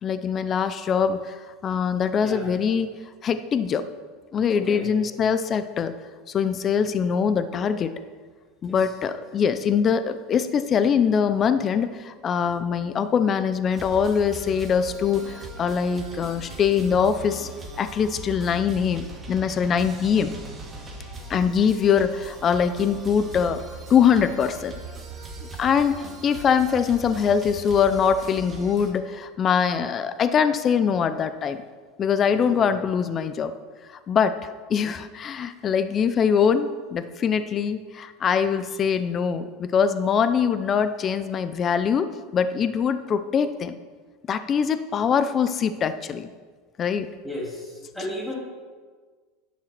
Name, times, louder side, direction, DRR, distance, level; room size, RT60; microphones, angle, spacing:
voice 1, 0.0-2.9 3.2-3.9 4.3-5.9 6.3-7.9 8.6-17.5 17.8-20.3 21.3-23.6 23.9-24.7 25.6-31.6 32.0-33.5 33.9-43.7 44.3-46.3 46.8-47.1, left 7 dB, 30° left, 11 dB, 0.6 m, -23 dB
voice 2, 4.5-4.8 8.8-8.9 32.4-32.7 47.2-48.4, left 1 dB, 5° left, -4 dB, 2.7 m, -34 dB
sound 1, 13.7-28.9, right 3 dB, 20° right, 2.2 m, -39 dB
11.0 x 7.3 x 6.1 m, 1.5 s
supercardioid pair, 135°, 0 cm